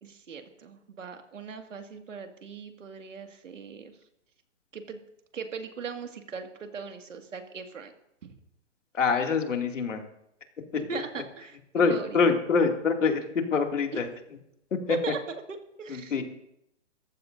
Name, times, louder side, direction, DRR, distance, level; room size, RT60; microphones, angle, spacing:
voice 1, 0.0-3.9 4.7-5.0 5.3-7.9 8.2-8.3 10.9-11.6 11.9-12.2 13.9-14.0 14.9-16.2, right 5 dB, 85° right, 5 dB, 2.2 m, -39 dB
voice 2, 8.9-10.0 10.9-11.0 11.7-13.2 13.5-14.1 14.7-15.0 15.9-16.2, left 5 dB, 80° left, 3 dB, 2.6 m, -25 dB
23.5 x 14.5 x 2.7 m, 0.78 s
hypercardioid pair, 180°, 37 cm